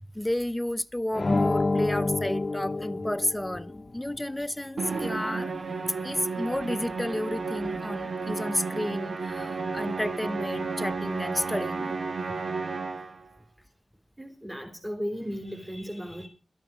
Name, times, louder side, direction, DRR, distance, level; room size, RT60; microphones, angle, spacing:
voice 1, 0.1-5.5 6.0-11.9, left 1 dB, 10° left, 0.8 m, -31 dB
sound 1, 1.1-3.8, left 2 dB, 45° left, 0.8 m, -28 dB
Musical instrument, 4.8-13.3, right 4 dB, 70° right, 1.1 m, -32 dB
voice 2, 14.2-16.3, equal, 10° right, 3.7 m, -35 dB
13.5 x 11.0 x 5.1 m
cardioid pair, 55°, 0 cm